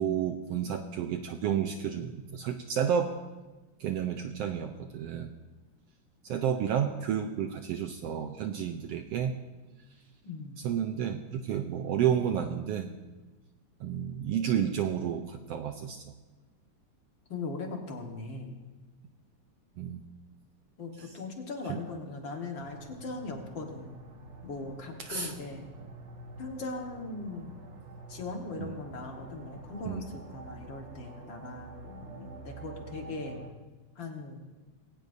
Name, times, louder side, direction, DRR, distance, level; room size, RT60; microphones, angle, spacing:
voice 1, 0.0-3.2 3.8-5.3 6.2-9.3 10.6-12.9 13.8-16.0 19.8-20.0 21.0-21.1 21.7-21.8 25.0-25.3 28.6-28.7 29.8-30.1, right 8 dB, 75° right, 6 dB, 1.4 m, -31 dB
voice 2, 10.2-10.6 17.3-18.6 20.8-24.0 24.4-25.7 26.4-27.6 28.1-33.4 34.0-34.4, left 3 dB, 45° left, 2 dB, 1.9 m, -39 dB
sound 1, 22.6-33.5, right 2 dB, 60° right, 0.7 m, -48 dB
21.0 x 17.5 x 2.7 m, 1.2 s
omnidirectional pair, 3.4 m